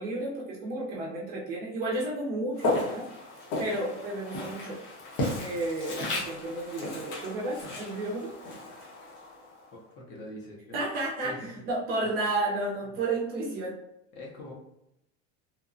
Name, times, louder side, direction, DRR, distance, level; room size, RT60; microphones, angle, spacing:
voice 1, 0.0-3.1 3.6-4.8 5.4-8.3 10.7-13.8, right 2 dB, 30° right, -4 dB, 0.4 m, -32 dB
Walk footsteps, 2.6-9.7, left 2 dB, 70° left, 1.0 m, -34 dB
voice 2, 9.7-10.8 11.2-11.7 12.8-12.9 14.1-14.5, left 1 dB, 30° left, -2 dB, 0.5 m, -44 dB
2.7 x 2.0 x 2.5 m, 0.83 s
supercardioid pair, 165°, 35 cm